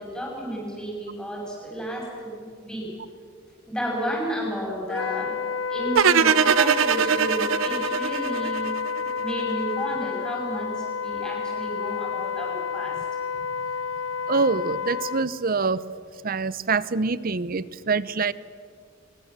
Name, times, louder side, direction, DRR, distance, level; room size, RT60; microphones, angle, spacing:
voice 1, 0.0-2.3 2.6-2.9 3.7-5.3 5.7-8.7 9.1-13.1, equal, 5° left, -3 dB, 7.2 m, -32 dB
Wind instrument woodwind instrument, 4.9-15.3, left 6 dB, 85° left, 0.9 m, -30 dB
sound 1, 6.0-9.1, right 7 dB, 85° right, 0.7 m, -21 dB
voice 2, 14.3-15.8 16.2-18.3, right 4 dB, 45° right, 17 dB, 0.7 m, -25 dB
23.0 x 22.0 x 7.5 m, 2.1 s
head